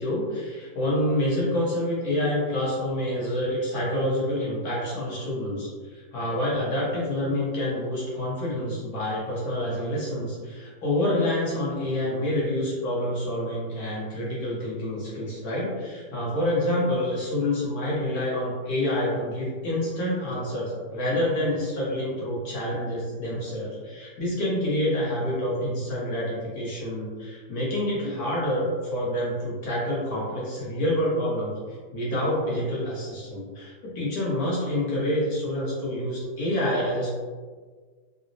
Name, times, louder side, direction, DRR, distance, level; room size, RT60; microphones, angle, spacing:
voice 1, 0.0-31.5 31.9-37.1, left 1 dB, 60° left, -6 dB, 1.3 m, -27 dB
3.9 x 2.0 x 2.6 m, 1.5 s
omnidirectional pair, 1.9 m